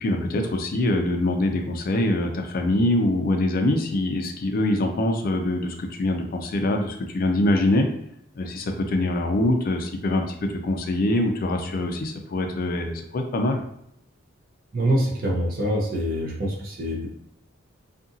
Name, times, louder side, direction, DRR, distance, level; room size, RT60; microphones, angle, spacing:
voice 1, 0.0-7.9 8.4-13.6, left 1 dB, 45° left, 4 dB, 0.3 m, -24 dB
voice 2, 14.7-17.1, equal, 45° right, -1 dB, 0.6 m, -25 dB
2.7 x 2.5 x 2.6 m, 0.73 s
head